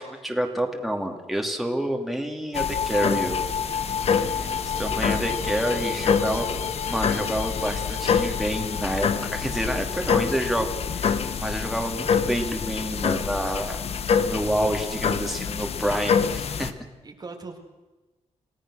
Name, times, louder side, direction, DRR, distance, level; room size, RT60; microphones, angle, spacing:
voice 1, 0.0-3.4 4.2-4.5 4.8-6.5 6.9-10.7 10.9-13.8 14.2-16.7, right 1 dB, ahead, 2 dB, 2.8 m, -28 dB
sound 1, 2.5-16.7, left 6 dB, 60° left, 1.2 m, -26 dB
sound 2, 3.2-9.6, left 6 dB, 85° left, 1.5 m, -40 dB
voice 2, 4.0-4.9 17.0-17.6, right 3 dB, 35° right, 3 dB, 2.3 m, -42 dB
28.0 x 17.5 x 6.4 m, 1.2 s
wide cardioid pair, 130°, 12 cm